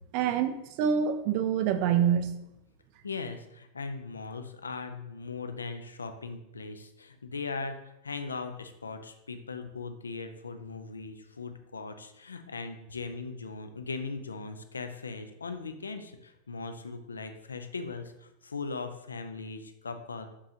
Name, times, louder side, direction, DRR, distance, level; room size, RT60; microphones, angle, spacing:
voice 1, 0.1-2.4, right 8 dB, 45° right, 9 dB, 0.3 m, -26 dB
voice 2, 3.0-20.3, left 4 dB, 75° left, 8 dB, 0.3 m, -39 dB
3.7 x 2.9 x 2.7 m, 0.86 s
figure-of-eight pair, 90°, 0 cm